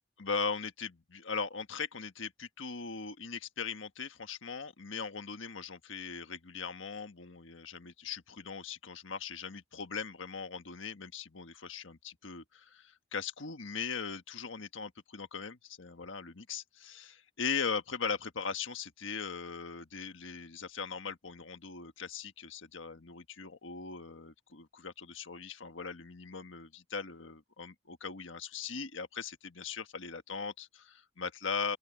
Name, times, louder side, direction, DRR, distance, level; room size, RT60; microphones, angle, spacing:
voice 1, 0.2-31.8, left 5 dB, 80° left, 1.5 m, -39 dB
open air
head